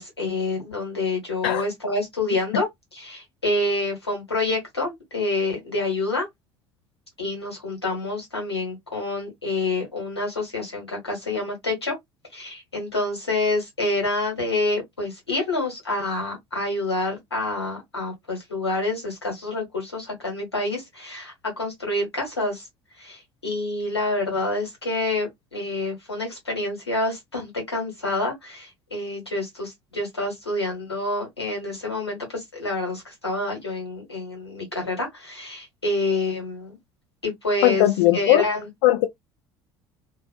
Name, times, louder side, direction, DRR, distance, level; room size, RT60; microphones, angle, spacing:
voice 1, 0.0-6.3 7.2-11.9 12.3-22.7 23.0-36.8 37.2-37.9 38.1-38.7, left 2 dB, 90° left, 1.2 m, -27 dB
voice 2, 37.6-38.5 38.8-39.1, left 14 dB, 65° left, 0.4 m, -18 dB
2.4 x 2.2 x 2.3 m
figure-of-eight pair, 60°, 13 cm